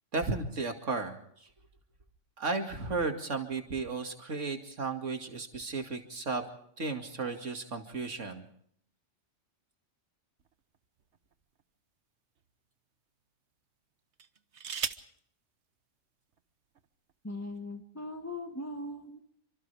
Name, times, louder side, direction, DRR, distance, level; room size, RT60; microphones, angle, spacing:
voice 1, 0.1-1.5 2.4-6.5 6.8-8.4, right 3 dB, 85° right, 5 dB, 2.7 m, -34 dB
sound 1, 10.4-11.6 12.4-12.5 14.1-15.2 16.3-16.4 16.7-17.1, right 7 dB, 70° right, 1.4 m, -39 dB
voice 2, 17.2-19.2, left 1 dB, 15° left, 4 dB, 1.6 m, -39 dB
29.0 x 25.5 x 3.5 m, 0.64 s
omnidirectional pair, 1.2 m